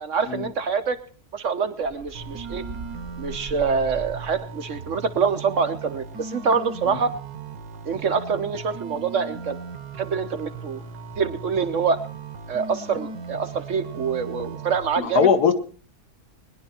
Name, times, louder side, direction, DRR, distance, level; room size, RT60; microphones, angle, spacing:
voice 1, 0.0-1.0 1.3-2.6 3.2-7.1 7.9-9.6 10.0-10.8 11.2-12.0 12.5-15.3, right 5 dB, 55° right, 8 dB, 1.2 m, -25 dB
sound 1, 1.8-4.6, right 3 dB, 35° right, 1.3 m, -40 dB
sound 2, 2.1-14.9, right 5 dB, 75° right, 1.8 m, -38 dB
voice 2, 15.0-15.5, left 6 dB, 75° left, 8 dB, 1.8 m, -20 dB
21.0 x 10.5 x 4.3 m, 0.39 s
omnidirectional pair, 1.7 m